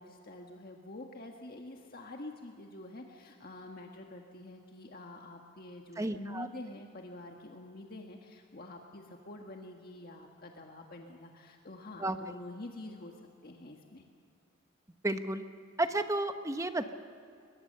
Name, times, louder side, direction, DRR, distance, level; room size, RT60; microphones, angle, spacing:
voice 1, 0.0-13.1 13.4-14.0, left 2 dB, 45° left, 2 dB, 1.6 m, -47 dB
voice 2, 6.0-6.5 12.0-12.2 15.0-15.4 15.8-16.9, right 2 dB, 15° right, 8 dB, 0.9 m, -32 dB
22.5 x 22.0 x 6.8 m, 2.5 s
head